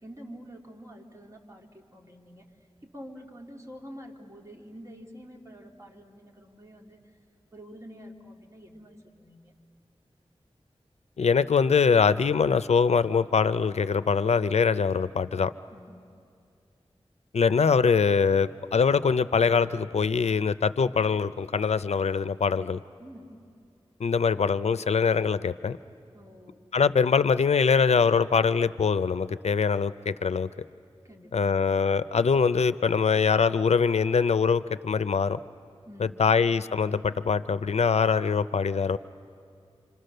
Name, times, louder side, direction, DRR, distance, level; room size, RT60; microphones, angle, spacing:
voice 1, 0.0-2.5 2.8-7.1 7.5-9.5 15.7-16.1 23.0-23.3 26.1-26.6 31.0-31.7 35.9-36.3, equal, 30° right, 0 dB, 2.6 m, -47 dB
voice 2, 11.2-15.5 17.3-22.8 24.0-25.8 26.7-30.5 31.3-35.4 36.0-39.0, left 5 dB, 80° left, 14 dB, 0.5 m, -23 dB
27.0 x 26.5 x 6.6 m, 2.4 s
wide cardioid pair, 75°, 11 cm